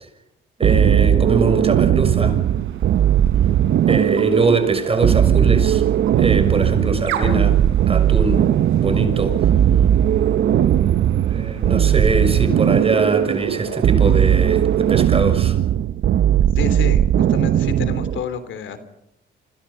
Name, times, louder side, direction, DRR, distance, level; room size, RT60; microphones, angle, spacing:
voice 1, 0.6-2.4 3.9-5.8 6.2-7.6 7.9-8.4 8.8-9.5 10.2-10.9 11.3-15.6, right 2 dB, 30° right, 6.5 m, -22 dB
sound 1, 0.6-18.2, right 10 dB, 65° right, 0.9 m, -17 dB
sound 2, 2.1-15.5, right 8 dB, 90° right, 5.9 m, -37 dB
voice 2, 16.5-17.0 17.3-18.8, left 7 dB, 75° left, 3.3 m, -29 dB
29.5 x 26.5 x 5.7 m
cardioid pair, 90°, 20 cm